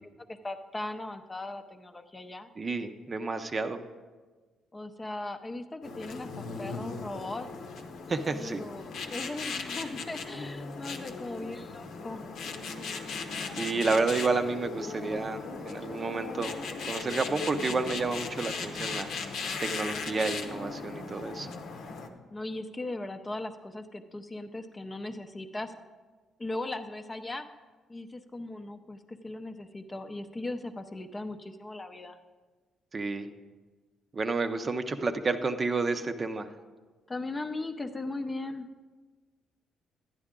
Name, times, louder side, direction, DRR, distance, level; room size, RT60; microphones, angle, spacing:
voice 1, 0.3-2.5 4.7-7.5 8.3-12.2 22.3-25.8 26.4-27.5 27.9-32.2 37.1-38.7, left 2 dB, 20° left, 8 dB, 0.6 m, -38 dB
voice 2, 2.6-3.8 8.1-8.6 13.5-16.5 16.8-19.1 19.6-21.5 32.9-33.3 34.1-36.5, right 3 dB, 35° right, 8 dB, 0.6 m, -30 dB
sound 1, 5.8-22.1, left 4 dB, 75° left, 0.9 m, -38 dB
12.0 x 9.8 x 3.7 m, 1.4 s
cardioid pair, 90°, 0 cm